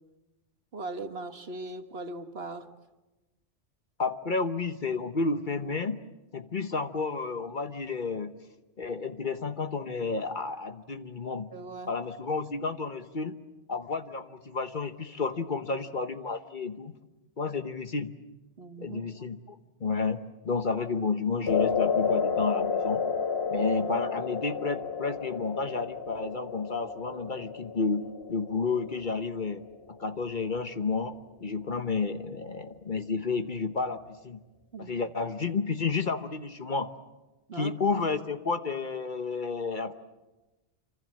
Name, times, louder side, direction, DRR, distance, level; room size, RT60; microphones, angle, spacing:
voice 1, 0.7-2.7 11.5-11.9 18.6-19.0 34.7-35.0 37.5-37.7, right 2 dB, 60° right, 8 dB, 1.7 m, -39 dB
voice 2, 4.0-6.0 6.3-8.3 8.8-11.5 11.9-13.4 13.7-16.9 17.4-18.1 18.8-23.0 23.5-29.6 29.9-34.4 34.8-36.9 37.5-39.9, left 4 dB, 45° left, 9 dB, 1.1 m, -31 dB
sound 1, 21.5-29.8, left 6 dB, 60° left, 1.4 m, -31 dB
27.0 x 26.0 x 7.6 m, 1.1 s
omnidirectional pair, 1.2 m